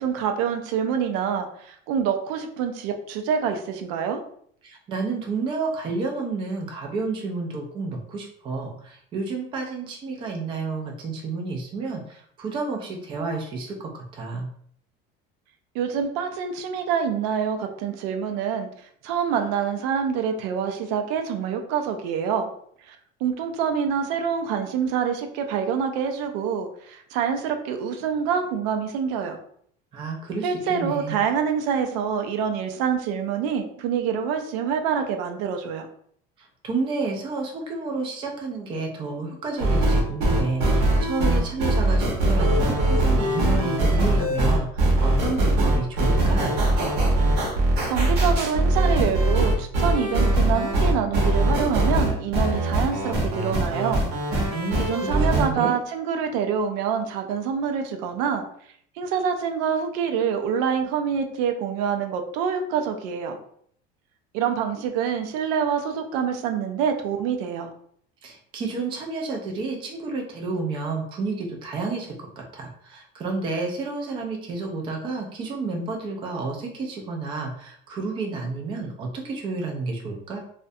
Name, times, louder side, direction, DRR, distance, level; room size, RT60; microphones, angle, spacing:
voice 1, 0.0-4.2 15.7-18.7 19.0-22.5 22.9-23.0 23.2-29.4 30.4-35.9 47.9-54.0 54.4-54.5 54.9-58.4 59.0-63.4 64.3-67.7, right 7 dB, 85° right, 6 dB, 0.4 m, -26 dB
voice 2, 4.6-14.5 29.9-31.2 36.4-46.5 54.4-55.8 68.2-80.4, right 3 dB, 25° right, 1 dB, 0.4 m, -30 dB
sound 1, 39.6-55.5, right 1 dB, 55° right, 0.8 m, -21 dB
2.4 x 2.1 x 2.6 m, 0.63 s
cardioid pair, 160°, 20 cm